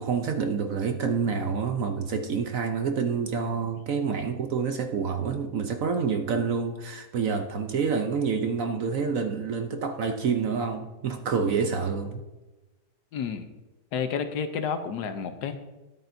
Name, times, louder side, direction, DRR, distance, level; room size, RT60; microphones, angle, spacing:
voice 1, 0.0-12.2, right 5 dB, 60° right, 6 dB, 1.0 m, -28 dB
voice 2, 13.1-13.5 13.9-15.6, left 6 dB, 70° left, 8 dB, 1.4 m, -30 dB
13.0 x 10.5 x 2.7 m, 1.1 s
omnidirectional pair, 1.9 m